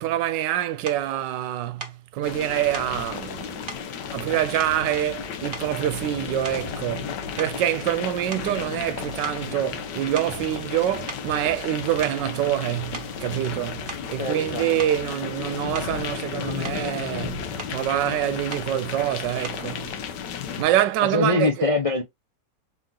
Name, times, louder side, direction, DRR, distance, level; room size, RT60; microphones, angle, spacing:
voice 1, 0.0-3.8 4.1-19.9 20.6-21.7, right 12 dB, 90° right, 1.2 m, -26 dB
sound 1, 0.9-1.1 1.8-2.0 2.7-3.0 3.7-3.9 4.6-5.2 5.5-5.9 6.4-6.8 7.4-8.9 9.2-9.5 10.2-10.4 11.1-11.3 11.8-12.3 12.9-13.2 13.9-14.1 14.8-15.0 15.7-16.0 16.4-16.9 17.6-17.8 18.5-18.7 19.4-19.7, right 4 dB, 40° right, 1.1 m, -39 dB
sound 2, 2.2-20.6, left 7 dB, 80° left, 1.4 m, -34 dB
sound 3, 10.3-18.3, left 2 dB, 10° left, 0.7 m, -47 dB
voice 2, 14.2-14.7 21.1-22.0, left 3 dB, 55° left, 0.3 m, -23 dB
3.9 x 2.9 x 3.6 m
omnidirectional pair, 1.9 m